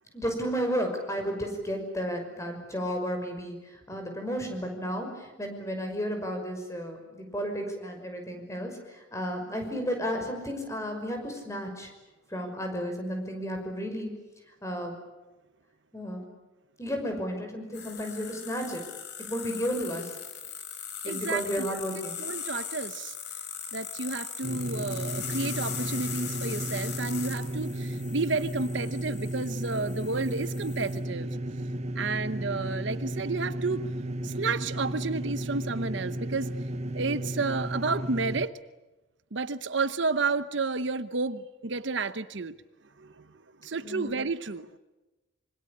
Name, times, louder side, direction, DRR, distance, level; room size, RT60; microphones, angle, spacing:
voice 1, 0.1-11.9 12.3-14.1 14.6-14.9 15.9-16.3 16.8-18.8 19.2-20.1 21.0-22.2 43.8-44.1, equal, 15° left, 4 dB, 5.8 m, -33 dB
sound 1, 17.7-31.0, left 7 dB, 55° left, 4.0 m, -39 dB
voice 2, 21.0-21.7 22.2-23.2 23.7-31.4 31.9-33.9 34.2-36.5 36.9-38.5 39.3-42.6 43.0-43.3 43.6-44.7, right 4 dB, 60° right, 13 dB, 0.9 m, -31 dB
sound 2, 24.4-38.5, right 1 dB, 35° right, 1.1 m, -34 dB
26.5 x 25.0 x 8.7 m, 1.1 s
head